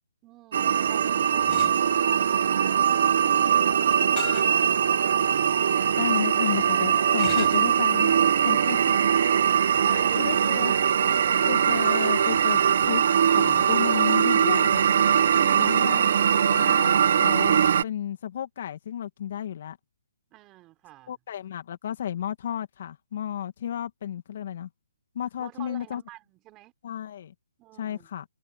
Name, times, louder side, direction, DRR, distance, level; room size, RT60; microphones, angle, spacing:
voice 1, 0.2-5.3 9.6-10.7 20.3-21.2 25.4-26.7 27.6-28.1, right 17 dB, 20° right, 5.9 m, -49 dB
sound 1, 0.5-17.8, right 8 dB, 50° right, 0.8 m, -21 dB
sound 2, 1.5-1.8 4.2-4.5 5.1-5.2 7.2-7.7, left 25 dB, 25° left, 6.4 m, -36 dB
voice 2, 6.0-8.1 8.4-8.8 9.2-9.3 9.9-10.8 11.5-13.0 13.4-14.9 15.5-16.1 16.4-19.8 21.1-24.7 25.1-26.0 26.8-27.3 27.8-28.2, left 10 dB, 45° left, 2.2 m, -32 dB
hypercardioid pair, 160°, 0 cm